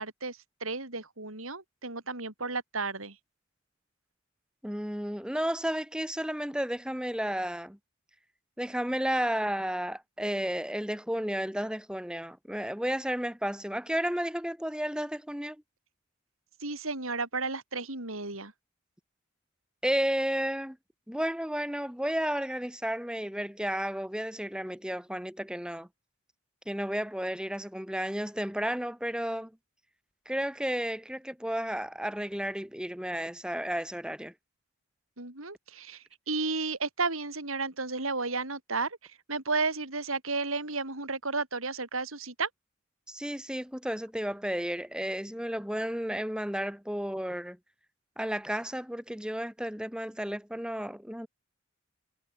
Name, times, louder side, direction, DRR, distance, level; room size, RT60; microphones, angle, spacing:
voice 1, 0.0-3.2 16.6-18.5 35.2-42.5, right 3 dB, 85° right, 6.1 m, -33 dB
voice 2, 4.6-7.8 8.6-15.6 19.8-20.8 21.1-25.9 26.7-29.5 30.3-34.3 43.1-47.6 48.2-51.3, equal, 5° right, 2.4 m, -32 dB
head